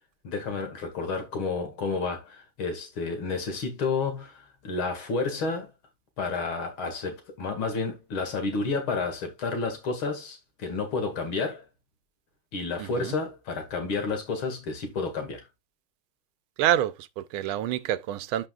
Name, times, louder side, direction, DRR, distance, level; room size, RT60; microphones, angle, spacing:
voice 1, 0.2-5.7 6.2-11.6 12.5-15.5, left 4 dB, 85° left, 2.9 m, -30 dB
voice 2, 12.8-13.1 16.6-18.5, right 12 dB, 90° right, 1.5 m, -27 dB
11.5 x 5.0 x 2.4 m
omnidirectional pair, 2.2 m